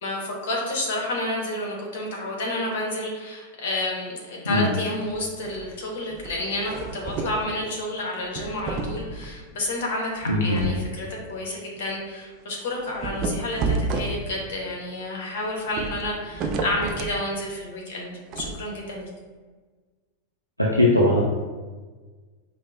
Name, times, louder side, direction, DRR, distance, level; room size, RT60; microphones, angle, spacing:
voice 1, 0.0-19.1, left 1 dB, 55° left, -1 dB, 0.9 m, -30 dB
sound 1, 5.1-5.7 6.1-7.5 8.2-9.4 10.2-10.9 11.2-11.3 11.8-11.9 12.8-14.6 15.6-17.2 18.3-18.5, right 3 dB, 35° right, 0.3 m, -31 dB
voice 2, 10.3-10.6 20.6-21.2, left 1 dB, 85° left, -4 dB, 0.4 m, -19 dB
4.8 x 2.0 x 2.3 m, 1.4 s
figure-of-eight pair, 90°, 0 cm